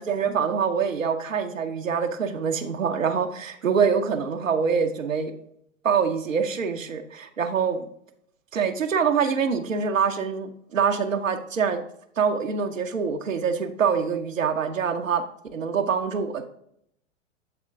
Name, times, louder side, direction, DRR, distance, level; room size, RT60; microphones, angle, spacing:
voice 1, 0.0-5.3 5.8-7.8 8.5-11.8 12.2-15.2 15.5-16.5, right 6 dB, 85° right, 5 dB, 0.7 m, -25 dB
7.7 x 3.6 x 3.5 m, 0.70 s
figure-of-eight pair, 105°, 38 cm